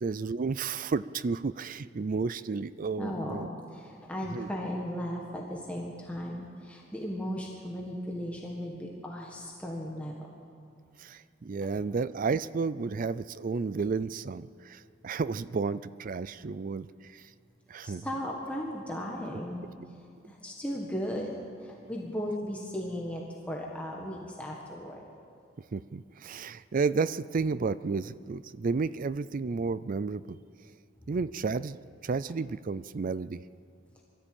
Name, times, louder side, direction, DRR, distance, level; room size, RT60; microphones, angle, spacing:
voice 1, 0.0-3.5 4.3-4.5 11.0-16.9 17.1-17.2 17.7-18.1 25.7-30.4 31.1-31.8 32.0-33.4, right 4 dB, 45° right, 17 dB, 0.4 m, -32 dB
voice 2, 3.0-10.3 17.8-19.6 20.2-21.3 21.6-25.0, equal, 5° left, -2 dB, 1.7 m, -36 dB
22.0 x 14.0 x 8.8 m, 2.3 s
head